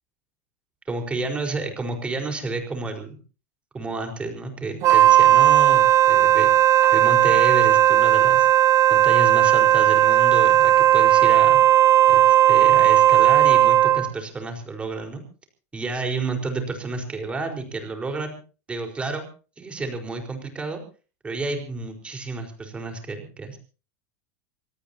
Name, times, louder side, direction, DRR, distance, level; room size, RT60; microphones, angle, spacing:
voice 1, 0.9-3.2 3.7-6.5 6.9-8.5 8.9-11.6 12.1-15.2 15.7-18.4 18.7-19.2 19.6-20.8 21.2-23.6, right 3 dB, 15° right, 4 dB, 4.7 m, -30 dB
Wind instrument woodwind instrument, 4.8-14.1, right 12 dB, 40° right, 1.6 m, -16 dB
25.5 x 18.5 x 2.9 m, 0.36 s
supercardioid pair, 130°, 7 cm